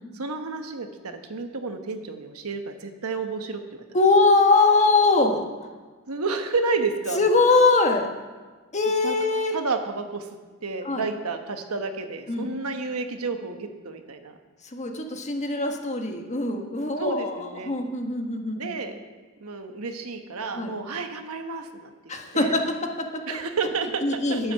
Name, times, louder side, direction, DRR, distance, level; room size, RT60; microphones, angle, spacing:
voice 1, 0.2-3.8 6.1-7.2 9.0-9.2 9.5-10.3 10.6-14.4 17.0-17.8 18.5-18.9 19.4-22.6 23.3-24.5, right 4 dB, 80° right, 6 dB, 1.2 m, -31 dB
voice 2, 3.9-5.5 7.1-8.1 8.7-9.6 10.8-11.0 12.3-12.5 14.7-18.7 20.6-20.7 22.1-23.4 24.0-24.5, left 3 dB, 35° left, 3 dB, 1.4 m, -22 dB
11.0 x 9.4 x 6.9 m, 1.3 s
head